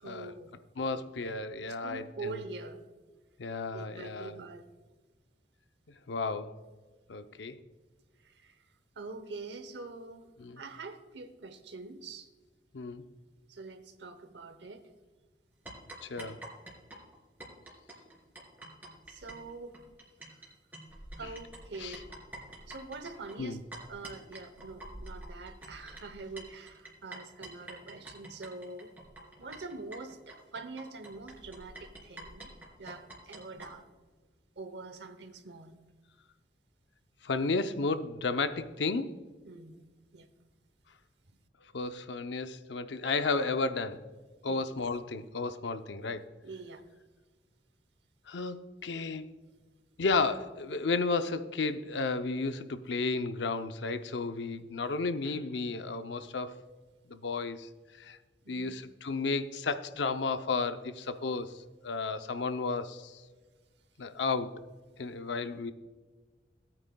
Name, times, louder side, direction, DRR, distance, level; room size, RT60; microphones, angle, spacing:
voice 1, 0.0-0.5 0.8-1.0 1.8-2.8 3.7-4.7 8.2-8.6 9.0-12.3 13.5-14.9 19.1-19.8 20.2-20.4 21.2-22.1 22.6-23.6 23.9-28.9 29.4-32.5 32.8-33.9 34.6-35.8 39.4-39.8 40.1-40.3 44.5-44.6 46.4-46.9 58.4-58.8, right 3 dB, 70° right, 10 dB, 0.9 m, -44 dB
voice 2, 0.8-2.4 3.4-4.4 6.1-6.6 7.1-7.6 10.4-10.6 12.7-13.0 16.0-16.4 21.8-22.0 23.4-23.6 37.2-39.2 41.7-44.1 44.4-46.3 48.3-49.3 50.0-56.6 57.1-57.7 58.0-58.2 58.5-63.2 64.0-64.6 65.0-65.7, left 3 dB, 75° left, 10 dB, 0.6 m, -33 dB
sound 1, 15.7-20.5 20.7-33.7, right 1 dB, 10° right, 2.8 m, -47 dB
17.5 x 9.0 x 2.3 m, 1.3 s
head